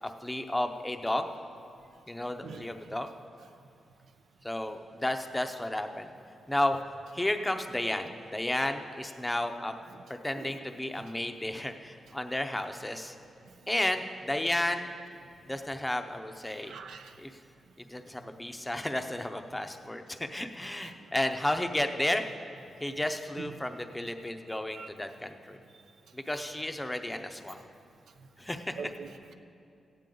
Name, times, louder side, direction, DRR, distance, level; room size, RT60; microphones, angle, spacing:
voice 1, 0.0-1.3 2.1-3.1 4.4-6.1 6.5-6.8 7.1-9.7 10.2-13.2 13.7-14.9 15.5-16.7 17.2-17.3 17.8-22.2 22.8-25.6 26.1-27.6 28.4-28.7, left 1 dB, 10° left, 6 dB, 0.6 m, -32 dB
voice 2, 2.4-3.0 10.4-10.5 10.9-11.0 13.4-13.7 16.6-17.2 20.8-21.1 23.4-23.6 24.5-24.9 28.8-29.3, right 5 dB, 85° right, 7 dB, 0.6 m, -45 dB
15.5 x 9.1 x 3.8 m, 2.6 s
wide cardioid pair, 120°, 0 cm